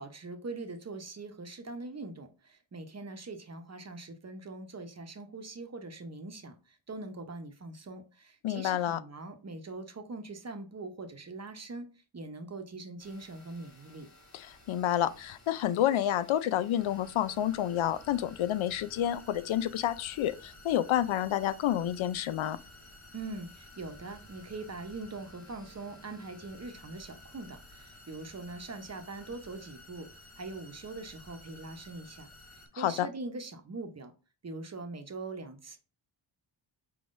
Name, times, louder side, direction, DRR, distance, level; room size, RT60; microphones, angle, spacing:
voice 1, 0.0-6.6 6.9-11.9 12.1-14.1 23.1-30.1 30.4-32.3 32.8-34.1 34.4-35.8, right 3 dB, 35° right, 0.8 m, -42 dB
voice 2, 8.4-9.0 14.3-22.6 32.7-33.1, left 11 dB, 85° left, 0.5 m, -29 dB
sound 1, 13.0-32.7, left 1 dB, 35° left, 1.7 m, -54 dB
4.6 x 3.7 x 2.5 m
cardioid pair, 80°, 47 cm